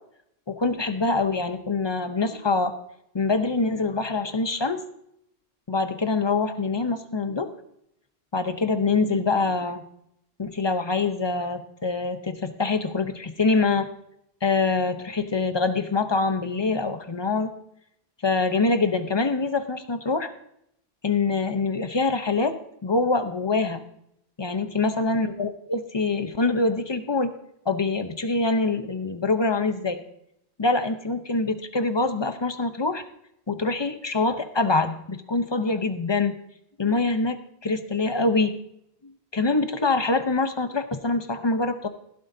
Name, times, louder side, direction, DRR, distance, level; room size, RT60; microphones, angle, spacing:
voice 1, 0.5-2.7 3.1-4.8 5.7-7.5 8.3-9.8 10.4-13.9 14.4-17.5 18.2-20.3 21.0-22.5 22.8-23.8 24.4-27.3 27.7-30.0 30.6-33.0 33.5-36.4 36.8-37.4 37.6-38.5 39.0-41.9, left 3 dB, 30° left, 8 dB, 0.8 m, -24 dB
16.0 x 11.5 x 2.7 m, 0.75 s
omnidirectional pair, 1.1 m